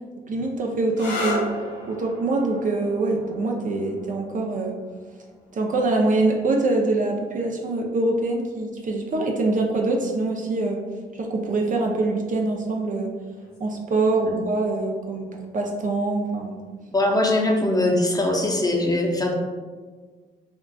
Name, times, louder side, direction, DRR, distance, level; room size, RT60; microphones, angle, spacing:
voice 1, 0.3-1.5 1.9-4.7 5.5-10.8 11.1-13.1 13.6-16.6, right 2 dB, 45° right, 1 dB, 0.5 m, -24 dB
sound 1, 0.9-8.3 9.3-9.8 13.4-13.7, left 2 dB, 85° left, 0.7 m, -37 dB
voice 2, 16.9-19.3, left 1 dB, 20° left, 0 dB, 0.6 m, -21 dB
3.7 x 2.3 x 2.2 m, 1.4 s
supercardioid pair, 55°, 18 cm